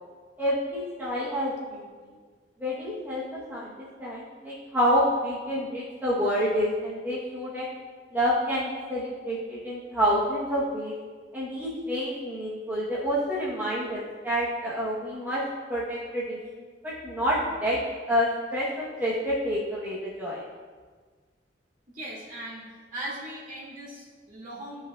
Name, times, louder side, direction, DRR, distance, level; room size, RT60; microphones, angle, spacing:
voice 1, 0.4-1.9 2.6-7.7 8.1-10.9 11.3-15.4 15.7-17.8 18.1-20.4, equal, 10° right, -7 dB, 0.9 m, -28 dB
voice 2, 21.9-22.7 22.9-24.8, right 1 dB, 45° right, -6 dB, 2.1 m, -39 dB
12.5 x 5.2 x 2.3 m, 1.5 s
head